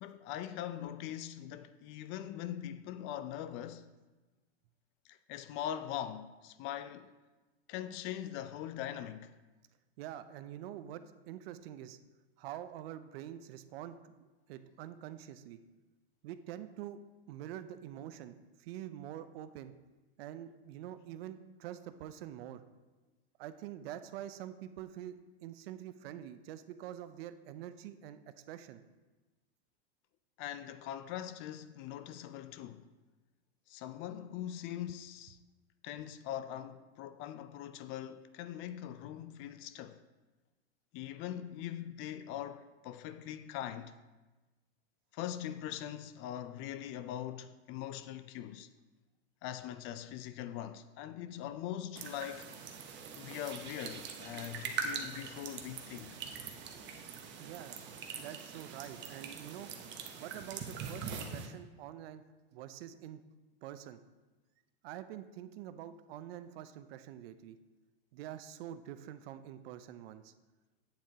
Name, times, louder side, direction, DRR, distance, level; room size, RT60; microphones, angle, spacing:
voice 1, 0.0-3.9 5.0-7.1 7.7-9.4 30.4-32.9 33.7-35.4 35.8-40.0 40.9-43.9 45.1-48.7 49.4-52.5 53.2-56.2, left 11 dB, 40° left, 0.4 m, -42 dB
voice 2, 10.0-12.0 12.4-15.6 16.2-17.0 17.3-19.7 20.2-22.6 23.4-28.2 28.5-28.8 57.4-59.7 60.2-62.2 62.5-63.2 63.6-64.0 64.8-67.6 68.1-70.3, right 11 dB, 70° right, 0.6 m, -46 dB
sound 1, 52.0-61.5, right 6 dB, 35° right, 0.9 m, -43 dB
8.7 x 7.4 x 2.8 m
hypercardioid pair, 115°, 32 cm